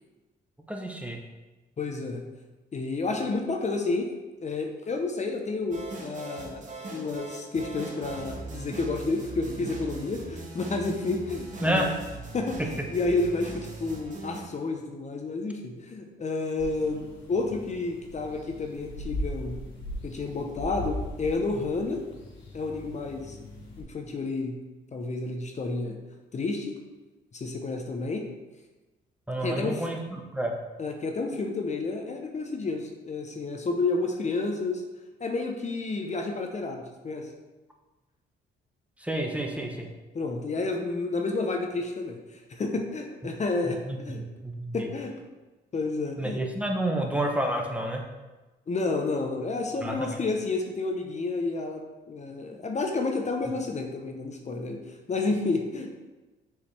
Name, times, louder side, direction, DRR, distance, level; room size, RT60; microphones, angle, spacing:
voice 1, 0.7-1.2 11.6-11.9 29.3-30.6 39.0-39.9 43.9-44.9 46.2-48.0 49.8-49.9, right 1 dB, 5° right, 1 dB, 0.8 m, -29 dB
voice 2, 1.8-2.3 2.7-4.1 4.4-11.9 12.3-19.6 20.0-22.0 22.5-23.4 23.8-24.6 24.9-26.0 26.3-26.7 27.3-28.2 29.4-29.9 30.8-34.8 35.2-37.3 40.1-44.2 44.7-45.1 45.7-46.4 48.7-51.8 52.1-55.9, left 3 dB, 35° left, 3 dB, 0.8 m, -30 dB
sound 1, 5.7-14.4, right 3 dB, 40° right, 1.4 m, -40 dB
sound 2, 16.6-23.8, left 1 dB, 80° left, 1.3 m, -39 dB
6.8 x 4.8 x 3.3 m, 1.2 s
cardioid pair, 90°, 20 cm